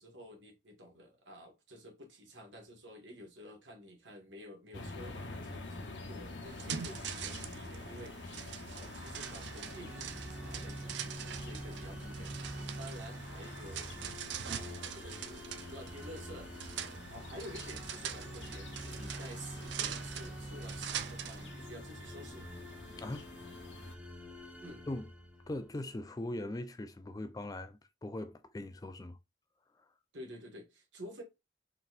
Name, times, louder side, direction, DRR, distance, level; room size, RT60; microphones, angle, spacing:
voice 1, 0.0-14.2 14.4-16.5 17.1-22.5 24.6-24.8 30.1-31.2, equal, 85° right, 1.5 m, -51 dB
sound 1, 4.7-24.0, left 2 dB, 75° left, 0.9 m, -48 dB
sound 2, 6.5-21.5, right 8 dB, 70° right, 0.5 m, -44 dB
sound 3, 8.8-25.9, equal, 5° right, 0.8 m, -47 dB
voice 2, 23.0-23.3 24.9-25.1 25.5-29.2 29.8-29.9, left 1 dB, 20° left, 0.4 m, -40 dB
4.0 x 4.0 x 2.4 m
head